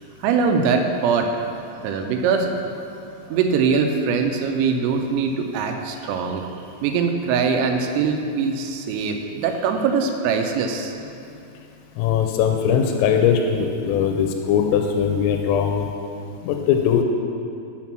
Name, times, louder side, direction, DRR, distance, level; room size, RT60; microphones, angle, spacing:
voice 1, 0.2-1.5 1.8-2.6 3.1-6.5 6.8-10.9, right 5 dB, 85° right, 4 dB, 3.2 m, -22 dB
voice 2, 12.0-15.9 16.4-17.0, left 7 dB, 90° left, 3 dB, 3.3 m, -20 dB
7.4 x 5.9 x 7.2 m, 2.6 s
omnidirectional pair, 5.9 m